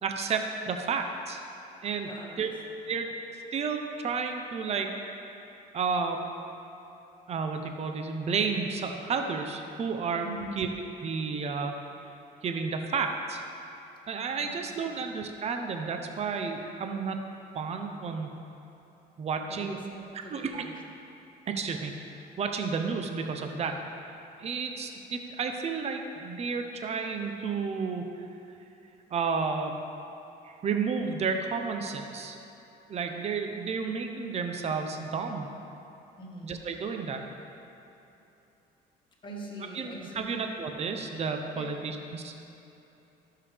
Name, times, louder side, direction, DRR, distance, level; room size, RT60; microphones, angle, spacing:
voice 1, 0.0-1.4 1.8-2.1 2.4-2.5 2.9-3.1 3.5-4.9 5.7-6.2 7.3-10.3 10.6-10.7 11.0-11.8 12.4-13.4 14.1-17.2 17.5-18.4 19.2-19.8 20.1-20.6 21.5-22.1 22.4-23.8 24.4-28.1 29.1-29.7 30.4-32.4 32.9-35.5 36.4-37.2 39.7-42.3, right 5 dB, 40° right, 5 dB, 0.7 m, -31 dB
voice 2, 2.0-2.5 2.9-3.0 10.2-10.5 14.4-15.0 19.5-20.7 36.2-36.6 39.2-40.3 41.5-41.7, right 1 dB, 30° left, -2 dB, 1.6 m, -43 dB
11.5 x 6.8 x 3.5 m, 3.0 s
cardioid pair, 110°, 17 cm